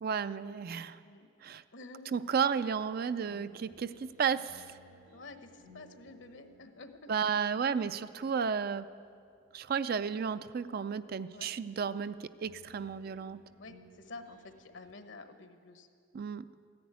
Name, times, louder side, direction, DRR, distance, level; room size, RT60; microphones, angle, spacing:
voice 1, 0.0-1.0 1.4-1.6 2.1-4.6 7.1-8.9 9.5-13.4 16.1-16.5, right 6 dB, 50° right, 13 dB, 0.4 m, -33 dB
voice 2, 1.7-2.2 5.1-7.1 11.3-11.5 13.6-15.9, left 3 dB, 65° left, 8 dB, 1.0 m, -50 dB
sound 1, 3.1-14.9, equal, 75° right, 2.5 m, -62 dB
14.0 x 10.5 x 9.5 m, 2.3 s
head